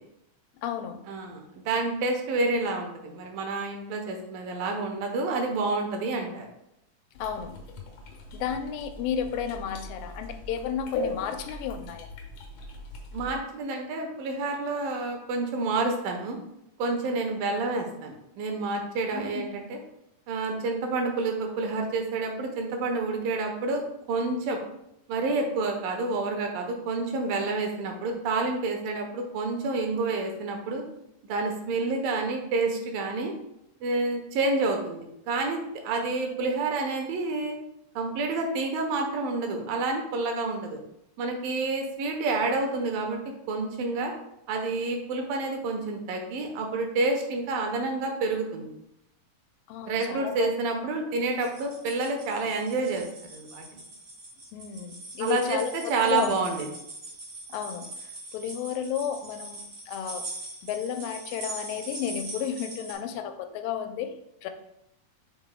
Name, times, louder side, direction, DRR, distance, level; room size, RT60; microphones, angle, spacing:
voice 1, 0.5-1.0 7.2-7.6 8.3-12.1 19.1-19.4 49.7-50.5 54.5-56.4 57.5-60.3 60.6-64.1 64.4-64.5, left 8 dB, 85° left, 8 dB, 2.3 m, -32 dB
voice 2, 1.1-6.5 13.1-16.4 16.8-19.8 20.3-23.8 24.1-24.6 25.1-30.8 31.2-33.3 33.8-37.6 38.0-40.8 41.2-43.2 43.5-44.1 44.5-48.7 49.9-53.0 53.3-53.6 55.2-55.6 55.9-56.7, right 3 dB, 85° right, 3 dB, 2.7 m, -29 dB
sound 1, 7.1-13.4, left 2 dB, 70° left, 2.2 m, -39 dB
sound 2, 51.3-62.9, right 2 dB, 45° right, 3.3 m, -42 dB
8.1 x 6.1 x 2.3 m, 0.81 s
omnidirectional pair, 4.0 m